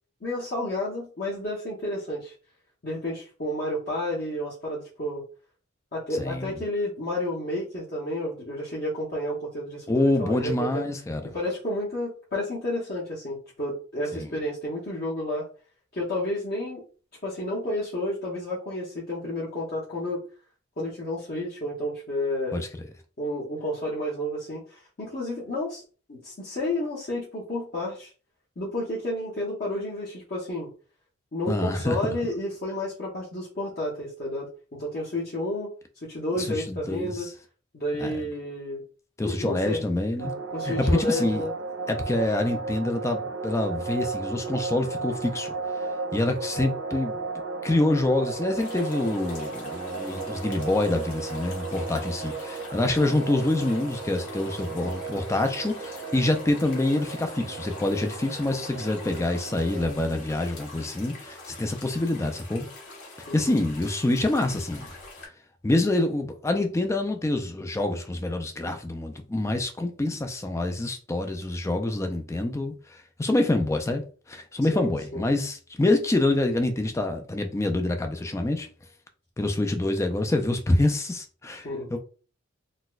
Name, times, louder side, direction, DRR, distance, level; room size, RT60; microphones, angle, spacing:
voice 1, 0.2-2.3 2.8-5.2 5.9-10.8 11.3-15.4 15.9-16.8 17.2-20.2 20.8-22.6 23.2-25.8 26.1-28.1 28.6-30.7 31.3-35.7 36.0-37.3 37.7-38.8 39.2-39.8 40.5-41.5 63.3-63.6 74.7-75.2 81.6-81.9, left 1 dB, 45° left, 0.8 m, -31 dB
voice 2, 6.1-6.5 9.9-11.3 14.1-14.3 22.5-22.7 31.5-32.0 36.4-37.3 38.0-38.1 39.2-40.3 40.6-41.4 41.9-45.5 46.1-47.2 47.6-62.7 63.3-64.9 65.6-74.0 74.3-78.7 79.4-82.0, left 2 dB, 15° left, 0.3 m, -26 dB
sound 1, 40.2-59.9, right 4 dB, 75° right, 0.5 m, -35 dB
sound 2, 48.6-65.3, left 3 dB, 90° left, 1.4 m, -44 dB
4.0 x 2.1 x 2.4 m
head